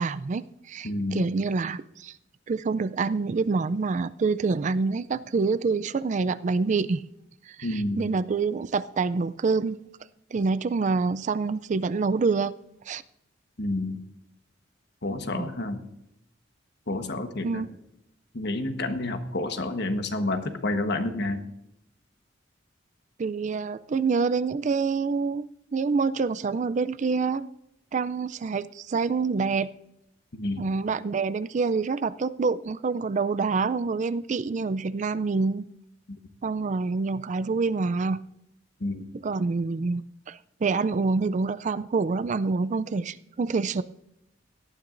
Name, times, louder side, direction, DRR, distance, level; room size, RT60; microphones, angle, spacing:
voice 1, 0.0-2.1 2.5-7.0 7.5-7.6 8.0-9.8 10.3-12.5 12.9-13.0 15.3-15.5 17.4-17.7 23.2-27.5 27.9-29.7 30.6-35.7 36.4-38.2 39.2-43.8, right 4 dB, 40° right, 15 dB, 0.4 m, -26 dB
voice 2, 0.8-1.3 7.6-8.1 13.6-14.0 15.0-15.8 16.9-17.7 18.3-21.4 30.3-30.8 36.1-36.2 38.8-39.1, left 2 dB, 60° left, 7 dB, 1.3 m, -29 dB
18.0 x 12.5 x 2.6 m, 0.81 s
head